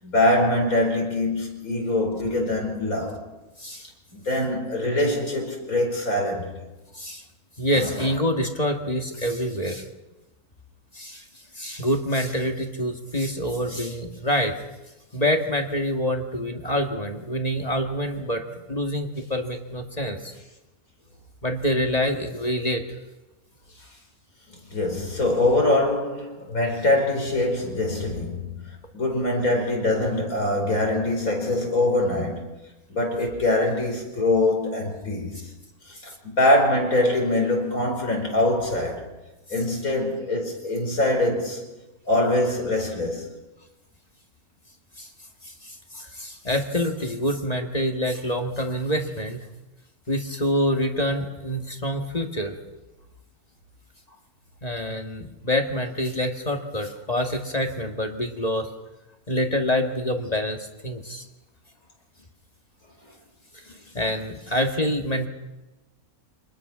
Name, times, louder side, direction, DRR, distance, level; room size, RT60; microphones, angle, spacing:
voice 1, 0.0-3.2 4.1-6.6 24.5-28.6 28.9-32.5 32.9-35.5 35.8-39.1 39.5-41.6 42.1-43.3, left 1 dB, 70° left, 5.2 m, -23 dB
voice 2, 7.6-9.8 10.9-11.2 11.5-14.6 15.1-18.4 18.7-20.3 21.4-22.8 45.0-45.1 45.5-49.4 50.1-52.5 54.6-58.7 59.3-61.3 63.7-65.3, equal, 25° left, 1.8 m, -26 dB
26.0 x 20.5 x 6.2 m
omnidirectional pair, 1.5 m